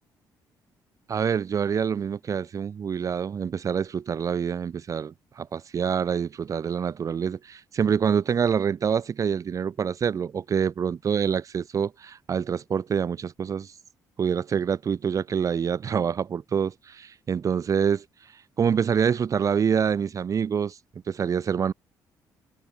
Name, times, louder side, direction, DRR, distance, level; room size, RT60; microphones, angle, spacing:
voice 1, 1.1-13.7 14.2-18.0 18.6-20.8 21.1-21.7, right 7 dB, 45° right, 1.5 m, -26 dB
cardioid pair, 105°, 8 cm